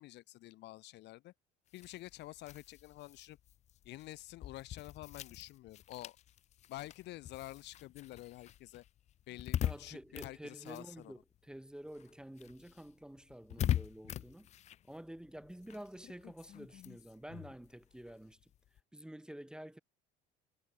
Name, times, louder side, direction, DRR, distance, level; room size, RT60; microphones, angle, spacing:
voice 1, 0.0-1.3 1.7-3.4 3.8-6.2 6.7-8.8 9.3-11.1, left 17 dB, 60° left, 0.9 m, -49 dB
sound 1, 1.7-11.6 11.9-18.8, left 11 dB, 35° left, 0.4 m, -42 dB
voice 2, 9.6-14.5 14.9-18.5 18.9-19.8, right 1 dB, 5° right, 0.8 m, -49 dB
cardioid pair, 130°, 20 cm